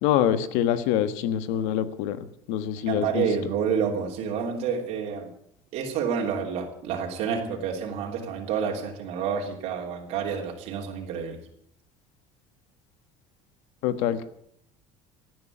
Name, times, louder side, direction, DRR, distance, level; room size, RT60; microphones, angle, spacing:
voice 1, 0.0-3.3 13.8-14.3, left 10 dB, 80° left, 12 dB, 1.5 m, -25 dB
voice 2, 2.8-5.3 5.7-11.4, right 7 dB, 70° right, 0 dB, 3.1 m, -29 dB
16.0 x 9.5 x 8.5 m, 0.70 s
cardioid pair, 120°, 12 cm